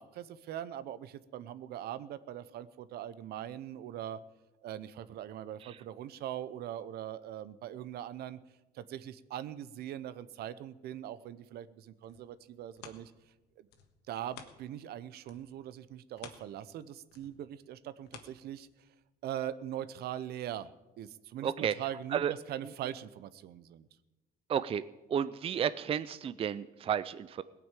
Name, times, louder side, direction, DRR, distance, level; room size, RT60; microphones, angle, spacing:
voice 1, 0.0-4.2 4.6-8.4 8.7-13.1 13.6-13.7 14.1-18.7 19.2-20.7 21.0-23.9, right 11 dB, 70° right, 16 dB, 0.7 m, -41 dB
sound 1, 12.0-14.9 15.2-19.0 19.5-19.6, left 8 dB, 85° left, 1.5 m, -54 dB
voice 2, 21.4-21.7 22.1-22.3 24.5-24.8 25.1-27.4, right 8 dB, 35° right, 15 dB, 0.4 m, -32 dB
18.0 x 6.0 x 9.1 m, 1.1 s
cardioid pair, 110°, 17 cm